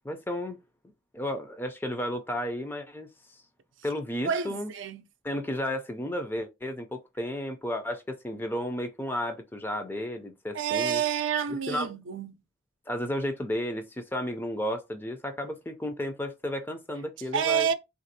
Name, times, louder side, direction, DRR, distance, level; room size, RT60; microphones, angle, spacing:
voice 1, 0.0-0.6 1.1-3.1 3.8-4.7 5.2-11.0 11.7-11.9 12.9-17.7, left 1 dB, 10° left, 0.4 m, -33 dB
voice 2, 4.2-5.0 10.5-12.3 17.3-17.7, right 7 dB, 75° right, 0.5 m, -28 dB
3.5 x 2.5 x 2.7 m
head